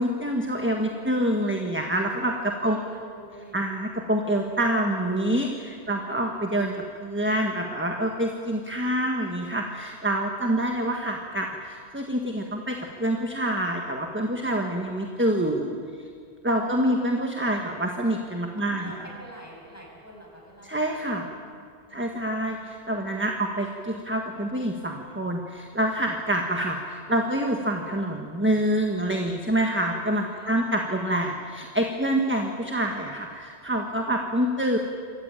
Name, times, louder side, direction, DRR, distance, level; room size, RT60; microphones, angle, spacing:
voice 1, 0.0-2.8 3.5-15.7 16.4-19.1 20.6-21.2 21.9-34.8, right 1 dB, 10° right, 2 dB, 1.5 m, -26 dB
voice 2, 2.3-3.6 5.8-6.4 16.5-16.9 18.6-20.7 21.2-22.7 30.3-30.6, right 1 dB, 15° left, -2 dB, 6.3 m, -47 dB
27.0 x 14.5 x 9.0 m, 2.3 s
omnidirectional pair, 1.2 m